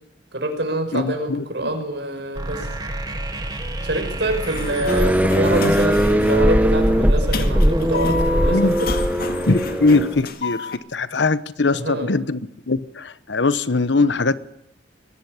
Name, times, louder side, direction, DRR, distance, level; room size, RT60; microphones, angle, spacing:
voice 1, 0.3-2.7 3.8-8.9 11.7-12.1, right 2 dB, 70° right, 6.1 m, -26 dB
voice 2, 0.9-1.4 8.5-8.7 9.5-12.4 12.7-14.4, left 3 dB, 80° left, 1.0 m, -21 dB
sound 1, 2.3-8.0, right 1 dB, 25° right, 2.8 m, -30 dB
Sliding door, 4.3-10.8, left 4 dB, 55° left, 1.9 m, -31 dB
sound 2, 4.9-10.2, equal, 10° right, 1.2 m, -19 dB
21.5 x 17.5 x 10.0 m
head